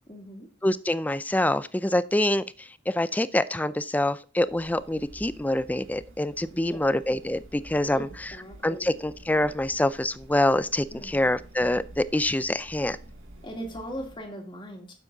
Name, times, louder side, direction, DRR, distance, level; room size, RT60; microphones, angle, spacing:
voice 1, 0.1-0.5 6.5-6.9 7.9-9.0 10.9-11.4 13.4-14.9, right 1 dB, 25° left, 3 dB, 2.2 m, -40 dB
voice 2, 0.6-2.4 2.9-8.1 8.6-13.0, left 1 dB, 10° left, 15 dB, 0.4 m, -25 dB
sound 1, 4.4-14.3, right 1 dB, 80° right, 2.0 m, -49 dB
9.8 x 7.4 x 3.9 m, 0.37 s
head